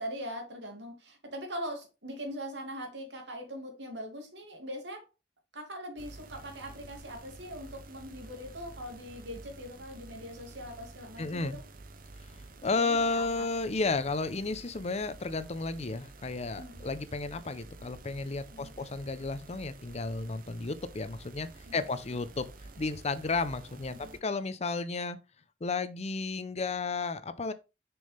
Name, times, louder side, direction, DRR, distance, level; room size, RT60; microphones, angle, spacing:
voice 1, 0.0-5.1 5.5-11.6 12.8-13.5 16.6-16.8 18.5-18.8 21.7-21.8 23.9-24.2, equal, 85° right, 2.6 m, -41 dB
sound 1, 6.0-24.2, right 3 dB, 55° right, 0.9 m, -50 dB
voice 2, 11.2-11.6 12.6-25.2 25.6-27.5, left 3 dB, 40° left, 0.7 m, -33 dB
6.3 x 6.2 x 3.4 m
head